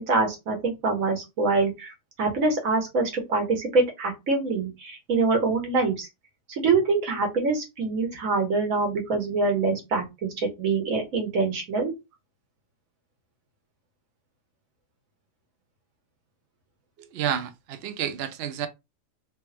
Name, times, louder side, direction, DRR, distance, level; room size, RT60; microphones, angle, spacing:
voice 1, 0.0-1.9 2.2-6.1 6.5-11.9, right 3 dB, 60° right, 1.5 m, -25 dB
voice 2, 17.0-18.7, right 9 dB, 80° right, 0.5 m, -30 dB
3.1 x 2.9 x 3.2 m
omnidirectional pair, 1.7 m